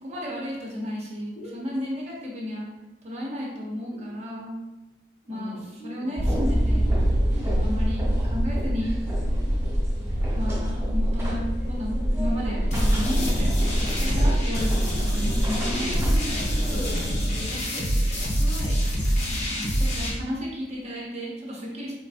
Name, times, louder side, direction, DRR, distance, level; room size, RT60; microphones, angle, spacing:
voice 1, 0.0-2.7 3.0-4.6 5.3-6.9 7.6-9.0 10.3-15.9 19.5-21.9, equal, 40° right, -4 dB, 0.8 m, -33 dB
voice 2, 5.2-6.1 7.2-7.6 15.6-15.8 16.2-17.8 18.1-18.7, left 1 dB, 75° left, -3 dB, 1.0 m, -40 dB
sound 1, 6.2-17.2, equal, 15° right, 1.2 m, -25 dB
sound 2, 12.7-20.1, equal, 40° left, 0.7 m, -26 dB
4.4 x 2.5 x 2.5 m, 1.1 s
head